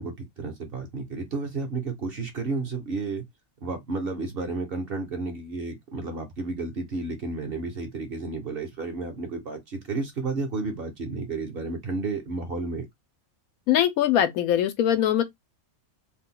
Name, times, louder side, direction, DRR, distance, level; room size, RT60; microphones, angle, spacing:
voice 1, 0.0-3.3 3.6-12.9, right 3 dB, 50° right, 0.8 m, -32 dB
voice 2, 13.7-15.2, left 10 dB, 80° left, 1.1 m, -22 dB
2.7 x 2.2 x 3.7 m
omnidirectional pair, 1.5 m